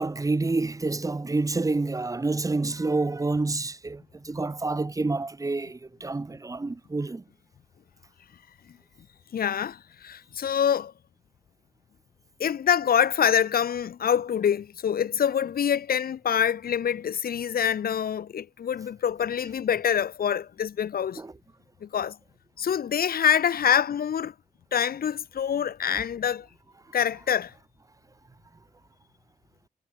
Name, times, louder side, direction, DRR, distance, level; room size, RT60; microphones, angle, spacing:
voice 1, 0.0-7.2 21.2-21.3, right 3 dB, 20° right, 3.4 m, -28 dB
voice 2, 9.3-10.9 12.4-21.2 21.8-22.2 22.6-24.3 24.7-26.5 26.9-27.5, left 8 dB, 75° left, 2.2 m, -25 dB
wide cardioid pair, 150°, 16 cm